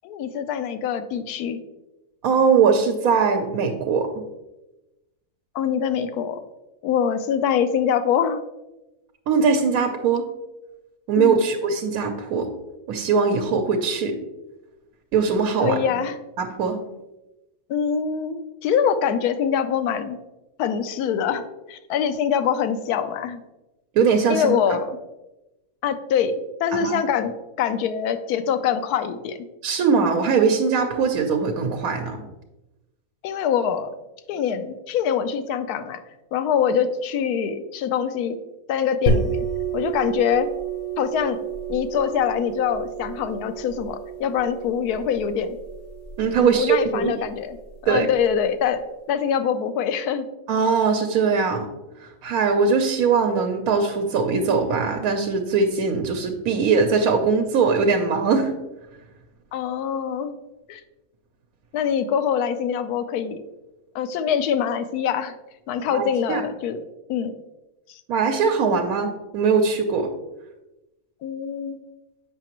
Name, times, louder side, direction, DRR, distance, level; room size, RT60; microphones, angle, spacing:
voice 1, 0.0-1.6 5.5-6.4 6.8-8.4 11.2-11.5 15.6-16.2 17.7-20.2 20.6-23.4 24.3-25.0 25.8-26.3 26.6-29.4 33.2-33.9 34.3-36.0 36.3-38.4 38.7-39.4 39.7-40.5 41.0-45.6 46.4-47.6 47.8-48.8 49.1-50.2 59.5-60.4 60.7-60.8 61.7-63.4 63.9-65.3 65.7-66.8 67.1-67.4 67.9-68.0 71.2-71.8, left 8 dB, 80° left, 11 dB, 1.1 m, -24 dB
voice 2, 2.2-4.1 9.3-10.3 11.1-12.5 12.9-14.2 15.1-15.8 16.4-16.8 23.9-24.6 26.7-27.0 29.6-32.2 46.2-47.1 47.9-48.1 50.5-51.7 52.0-58.5 65.9-66.4 68.1-70.1, right 5 dB, 75° right, 3 dB, 1.1 m, -21 dB
sound 1, 39.1-48.4, right 4 dB, 60° left, 1.0 m, -30 dB
7.6 x 5.7 x 3.0 m, 1.0 s
omnidirectional pair, 1.6 m